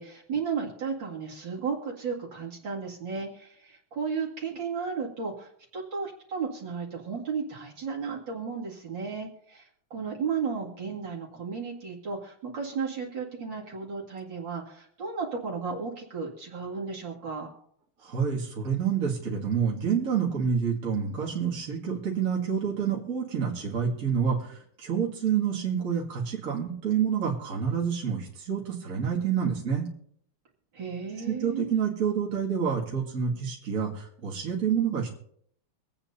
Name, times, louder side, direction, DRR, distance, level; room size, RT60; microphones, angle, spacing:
voice 1, 0.0-17.5 30.7-31.8, right 5 dB, 60° right, -3 dB, 2.8 m, -34 dB
voice 2, 18.0-29.9 31.3-35.1, right 7 dB, 40° right, -3 dB, 2.3 m, -28 dB
25.0 x 8.8 x 2.7 m, 0.66 s
omnidirectional pair, 2.4 m